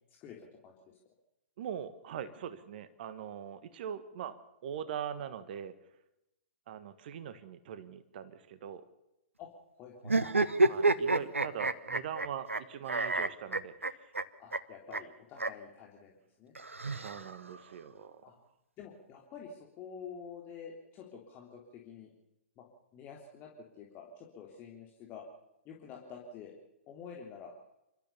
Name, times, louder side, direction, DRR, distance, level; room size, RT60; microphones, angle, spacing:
voice 1, 0.2-0.7 9.4-9.5 9.8-10.2 14.4-16.1 16.4-16.5 18.2-18.4 18.8-22.1 22.6-22.7 22.9-23.5 23.8-25.2 25.6-26.5 26.9-27.5, left 6 dB, 30° left, -1 dB, 3.5 m, -48 dB
voice 2, 1.6-4.3 4.6-5.7 6.7-8.8 10.6-14.1 16.8-18.2, right 8 dB, 50° right, 12 dB, 1.7 m, -42 dB
sound 1, 10.0-12.6 12.9-14.2 14.5-14.6 14.9-15.0 15.4-15.5 16.6-17.6, right 2 dB, 85° right, 1.2 m, -29 dB
28.5 x 13.5 x 7.0 m, 0.89 s
figure-of-eight pair, 115°, 7 cm